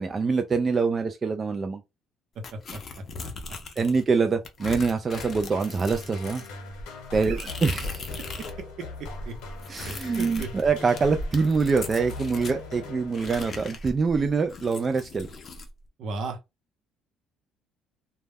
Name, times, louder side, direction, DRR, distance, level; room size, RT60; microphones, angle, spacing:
voice 1, 0.0-1.8 3.8-6.4 7.1-8.1 9.7-15.3, right 4 dB, 30° right, 0.3 m, -25 dB
sound 1, 2.4-4.0 4.4-8.6 8.9-12.6 13.1-15.7, left 2 dB, 40° left, 0.6 m, -38 dB
voice 2, 2.5-3.0 7.1-7.6 9.2-9.3 9.8-10.5 16.0-16.4, right 3 dB, 65° right, 0.8 m, -36 dB
sound 2, 5.2-13.7, left 3 dB, 85° left, 0.9 m, -41 dB
2.2 x 2.1 x 3.3 m
cardioid pair, 110°, 0 cm